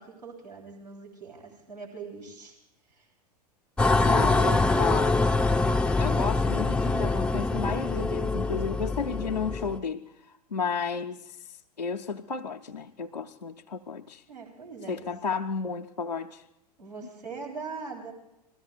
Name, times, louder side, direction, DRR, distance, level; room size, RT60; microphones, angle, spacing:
voice 1, 0.0-2.6 2.9-3.1 14.3-15.1 16.8-18.1, right 4 dB, 85° right, -1 dB, 3.4 m, -41 dB
sound 1, 3.8-9.8, left 3 dB, 5° left, 0.5 m, -24 dB
voice 2, 4.1-5.2 6.0-10.0 10.3-11.4 11.8-14.2 14.9-16.4, left 5 dB, 90° left, 0 dB, 0.6 m, -32 dB
28.0 x 21.0 x 2.4 m, 0.85 s
figure-of-eight pair, 90°, 21 cm